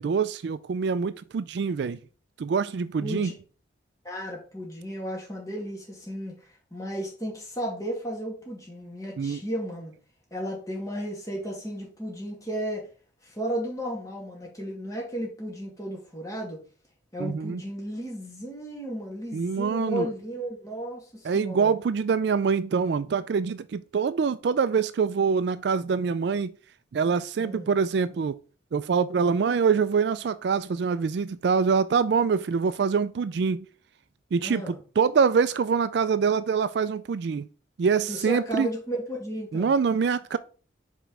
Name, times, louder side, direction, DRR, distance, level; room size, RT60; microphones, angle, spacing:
voice 1, 0.0-2.0 2.4-3.3 9.2-9.4 17.2-17.6 19.3-20.1 21.2-26.5 26.9-28.4 28.7-33.6 34.3-37.5 37.8-38.7 39.5-40.4, right 5 dB, 60° right, 0.3 m, -25 dB
voice 2, 3.0-3.3 4.0-6.3 6.7-9.9 10.3-12.9 13.2-16.6 17.1-21.7 27.4-27.7 34.4-34.7 38.1-39.7, right 1 dB, 20° left, 2.3 m, -34 dB
5.1 x 4.4 x 4.8 m
head